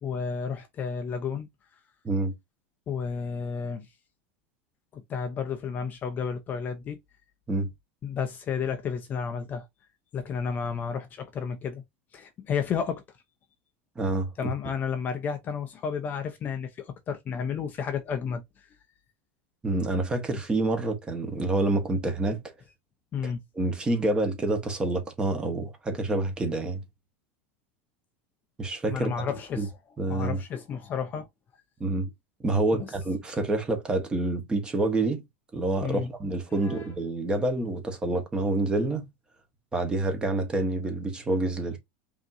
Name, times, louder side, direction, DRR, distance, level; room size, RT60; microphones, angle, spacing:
voice 1, 0.0-1.5 2.9-3.9 4.9-7.0 8.0-9.7 10.1-11.8 12.1-13.0 14.4-18.7 23.1-23.4 28.9-29.7 30.1-31.3 32.7-32.9 35.8-36.1 36.5-36.9, left 6 dB, 30° left, 0.6 m, -32 dB
voice 2, 14.0-14.5 19.6-22.4 23.6-26.8 28.6-29.1 29.6-29.7 30.0-30.4 31.8-32.1 32.4-35.2 35.5-39.1 39.7-41.8, right 2 dB, 15° right, 1.2 m, -27 dB
5.2 x 2.9 x 2.6 m
supercardioid pair, 145°, 6 cm